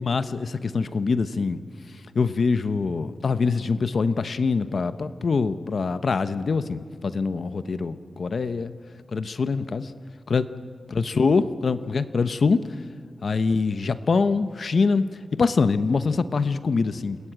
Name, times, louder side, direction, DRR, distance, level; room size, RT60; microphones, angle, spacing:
voice 1, 0.0-1.6 2.1-8.7 9.1-9.9 10.3-10.5 10.9-12.7 13.2-17.2, left 4 dB, 55° left, 12 dB, 1.0 m, -24 dB
29.0 x 20.0 x 8.9 m, 2.2 s
wide cardioid pair, 140°, 0 cm